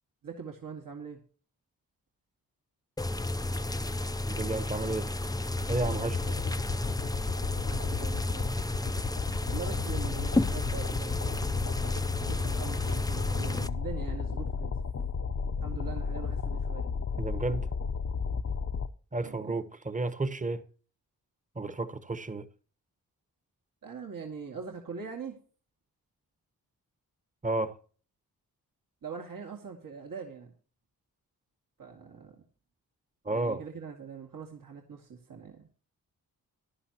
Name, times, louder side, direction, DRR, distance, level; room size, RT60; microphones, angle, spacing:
voice 1, 0.2-1.2 5.6-6.3 7.7-8.6 9.5-11.5 12.2-14.7 15.6-16.9 19.2-19.6 23.8-25.4 29.0-30.5 31.8-32.4 33.3-35.7, right 6 dB, 60° right, 2.0 m, -42 dB
sound 1, 3.0-13.7, left 2 dB, 10° left, 0.6 m, -32 dB
voice 2, 4.3-5.1 5.7-6.2 17.2-17.7 19.1-20.6 21.5-22.5 27.4-27.7 33.2-33.6, right 2 dB, 20° right, 1.2 m, -32 dB
sound 2, 5.2-18.9, left 5 dB, 40° left, 0.8 m, -34 dB
15.0 x 10.5 x 2.9 m
cardioid pair, 50°, 38 cm